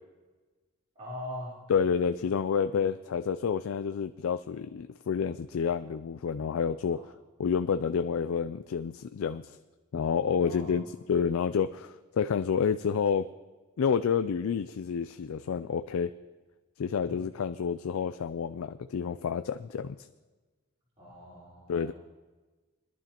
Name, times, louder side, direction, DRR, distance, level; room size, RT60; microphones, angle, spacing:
voice 1, 1.0-1.7 2.7-2.8 6.9-7.0 10.4-10.9 17.0-17.3 21.0-21.9, left 1 dB, 35° right, -10 dB, 3.8 m, -42 dB
voice 2, 1.7-7.0 7.4-9.6 9.9-13.3 13.8-16.1 16.8-20.1 21.7-21.9, left 6 dB, 85° left, 10 dB, 0.4 m, -29 dB
21.5 x 11.5 x 2.9 m, 1.3 s
head